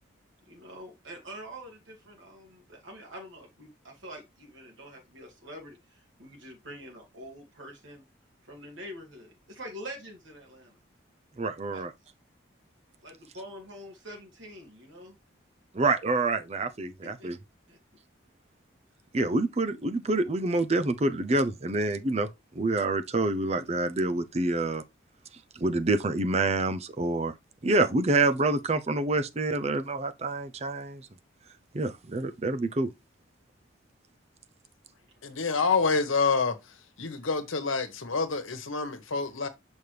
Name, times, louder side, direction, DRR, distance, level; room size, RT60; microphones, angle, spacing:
voice 1, 0.5-8.0 8.4-10.8 11.7-11.8 13.0-15.2 17.2-17.3 17.7-17.8 35.2-35.4, equal, 75° right, 2.5 m, -45 dB
voice 2, 11.4-11.9 15.7-17.4 19.1-22.3 22.5-24.8 25.6-27.3 27.6-31.0 31.7-32.9, right 2 dB, 30° right, 0.5 m, -27 dB
voice 3, 35.2-36.5 37.0-39.5, left 4 dB, 90° left, 1.2 m, -27 dB
6.2 x 5.2 x 3.3 m
head